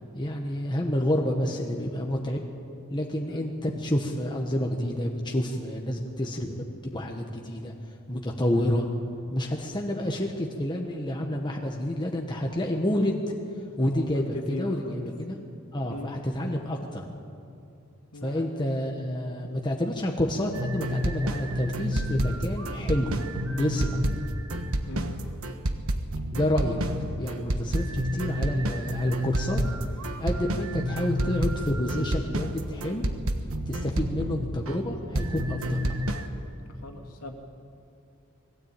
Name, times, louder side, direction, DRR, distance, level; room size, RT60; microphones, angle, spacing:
voice 1, 0.1-2.4 2.9-7.7 8.1-8.9 9.3-13.3 13.8-15.4 15.7-17.0 18.2-23.2 23.5-24.2 26.3-26.9 27.2-29.6 30.2-33.1 33.7-36.2, left 1 dB, 20° left, 1 dB, 1.2 m, -29 dB
voice 2, 14.5-15.0 15.9-16.1 18.1-19.0 24.9-25.2 36.8-37.3, left 2 dB, 90° left, 2 dB, 2.8 m, -40 dB
sound 1, 20.5-34.8 35.1-36.3, equal, 65° right, 1.4 m, -29 dB
21.5 x 16.0 x 9.0 m, 2.5 s
head